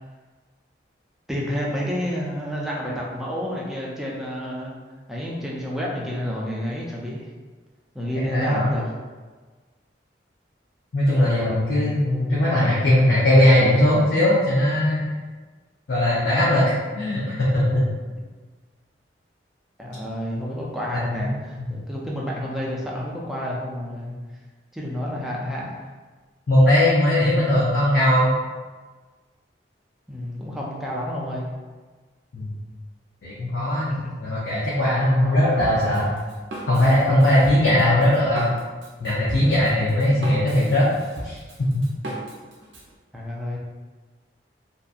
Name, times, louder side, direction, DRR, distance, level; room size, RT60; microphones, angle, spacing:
voice 1, 1.3-4.7 5.1-7.3 7.9-8.9 12.4-13.1 19.8-24.2 24.7-25.9 30.1-31.5 33.9-34.1 43.1-43.6, equal, ahead, -5 dB, 0.3 m, -30 dB
voice 2, 8.3-8.7 10.9-15.0 15.9-17.8 20.9-21.3 21.6-21.7 26.5-28.3 32.3-32.5 33.2-36.1 36.7-38.5 39.0-40.9 41.2-41.4, left 1 dB, 65° left, -8 dB, 0.5 m, -19 dB
Drum kit, 35.6-42.9, right 1 dB, 85° right, 0.6 m, -37 dB
2.7 x 2.3 x 2.4 m, 1.4 s
head